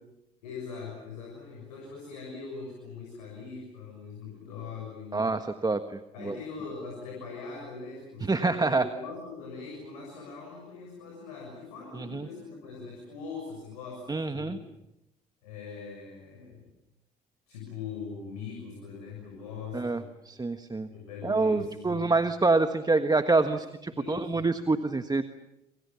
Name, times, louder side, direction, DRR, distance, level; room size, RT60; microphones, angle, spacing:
voice 1, 0.4-5.4 6.1-14.7 15.4-16.6 17.5-20.1 20.9-22.1 23.5-23.6 23.9-24.5, left 5 dB, 85° left, 0 dB, 6.9 m, -41 dB
voice 2, 5.1-6.3 8.3-8.9 12.0-12.3 14.1-14.6 19.7-20.9 21.2-25.3, right 3 dB, 20° right, 9 dB, 1.5 m, -26 dB
27.0 x 26.5 x 7.1 m, 0.88 s
hypercardioid pair, 60°, 19 cm